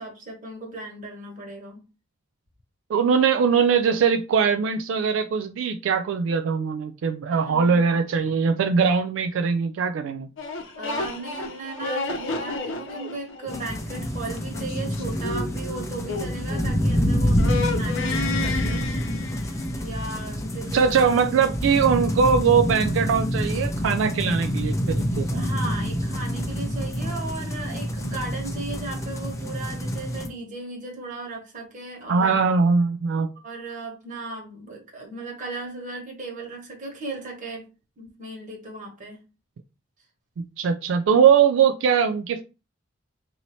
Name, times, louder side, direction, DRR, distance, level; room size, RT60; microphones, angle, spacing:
voice 1, 0.0-1.8 7.3-7.9 10.7-20.8 25.3-32.4 33.4-37.7 38.0-39.2, right 2 dB, 45° right, 0 dB, 1.4 m, -36 dB
voice 2, 2.9-10.3 20.7-25.4 32.1-33.3 40.6-42.4, right 6 dB, 80° right, 8 dB, 0.3 m, -21 dB
sound 1, 10.4-17.0 17.3-19.8, left 3 dB, 80° left, 0.7 m, -32 dB
sound 2, 13.5-30.3, equal, 15° left, 0.5 m, -27 dB
4.1 x 2.8 x 3.0 m, 0.31 s
head